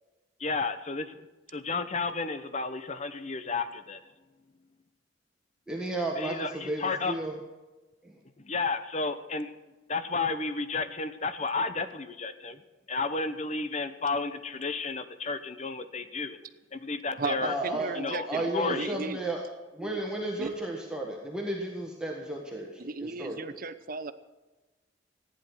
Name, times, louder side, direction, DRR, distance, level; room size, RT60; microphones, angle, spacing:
voice 1, 0.4-4.0 6.2-7.2 8.4-9.5 9.9-12.6 12.9-16.4 16.7-17.5 18.0-18.3 18.5-18.9, left 4 dB, 35° left, 11 dB, 0.9 m, -32 dB
voice 2, 5.7-7.4 8.0-8.1 17.4-17.9 18.3-19.4 19.7-23.4, right 1 dB, 5° right, -1 dB, 1.7 m, -33 dB
voice 3, 17.2-19.2 20.4-20.5 22.8-24.1, right 4 dB, 45° right, 11 dB, 0.8 m, -35 dB
15.0 x 10.5 x 6.3 m, 1.2 s
head